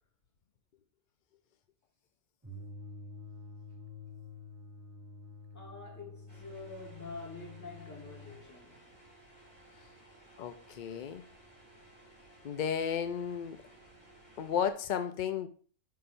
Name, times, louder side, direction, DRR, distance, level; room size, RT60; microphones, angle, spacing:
sound 1, 2.4-8.4, left 3 dB, 15° right, 0.6 m, -49 dB
voice 1, 5.5-8.9, left 3 dB, 15° left, 1.2 m, -47 dB
sound 2, 6.3-14.7, right 1 dB, 35° left, 3.6 m, -58 dB
voice 2, 10.4-11.2 12.4-13.6 14.4-15.5, left 8 dB, 70° left, 0.4 m, -33 dB
6.6 x 5.7 x 2.6 m
omnidirectional pair, 1.4 m